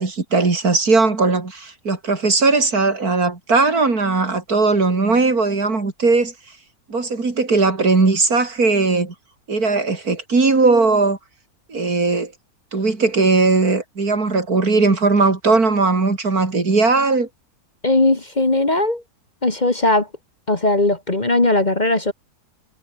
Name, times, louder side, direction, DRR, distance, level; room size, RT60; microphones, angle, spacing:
voice 1, 0.0-6.3 6.9-9.1 9.5-11.2 11.7-12.3 12.7-17.3, right 3 dB, 70° right, 3.9 m, -18 dB
voice 2, 17.8-19.0 19.4-20.1 20.5-22.1, left 2 dB, 30° left, 1.9 m, -18 dB
omnidirectional pair, 1.6 m